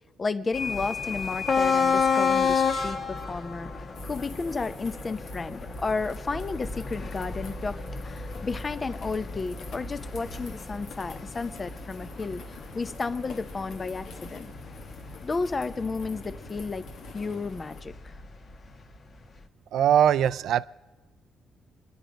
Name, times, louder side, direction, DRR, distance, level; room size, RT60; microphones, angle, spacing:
voice 1, 0.2-3.7 4.0-14.5 15.2-16.8 17.1-17.9, left 4 dB, 30° left, 0.6 m, -32 dB
sound 1, 0.5-18.2, left 5 dB, 45° left, 1.3 m, -31 dB
sound 2, 3.9-17.8, left 4 dB, 70° left, 1.2 m, -47 dB
voice 2, 19.7-20.6, right 9 dB, 75° right, 0.4 m, -21 dB
24.5 x 10.5 x 5.1 m
cardioid pair, 90°, 0 cm